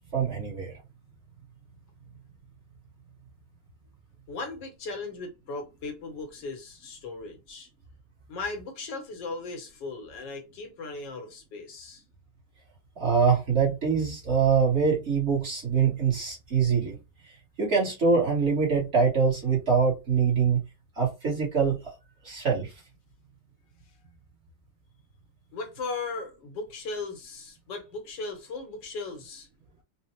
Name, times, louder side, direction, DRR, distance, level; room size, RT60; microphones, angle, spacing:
voice 1, 0.1-0.8 13.0-17.0 17.6-20.6 21.0-21.8 22.2-22.7, right 5 dB, 45° right, 1.3 m, -24 dB
voice 2, 4.3-7.7 8.3-12.0 25.5-29.5, left 3 dB, 90° left, 1.6 m, -37 dB
4.3 x 2.0 x 2.9 m
omnidirectional pair, 1.9 m